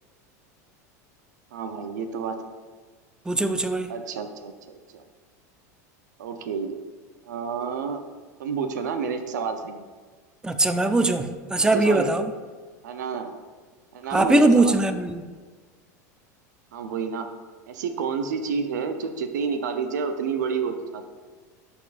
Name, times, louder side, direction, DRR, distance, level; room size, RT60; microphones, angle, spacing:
voice 1, 1.5-2.4 3.9-5.0 6.2-6.8 7.3-8.0 8.4-9.8 11.7-12.1 12.8-13.3 13.9-14.8 16.7-17.3 17.7-21.1, right 6 dB, 85° right, 8 dB, 0.6 m, -29 dB
voice 2, 3.3-3.9 10.4-12.3 14.1-15.2, right 2 dB, 10° right, 9 dB, 0.5 m, -21 dB
12.0 x 4.3 x 2.5 m, 1.5 s
hypercardioid pair, 110°, 9 cm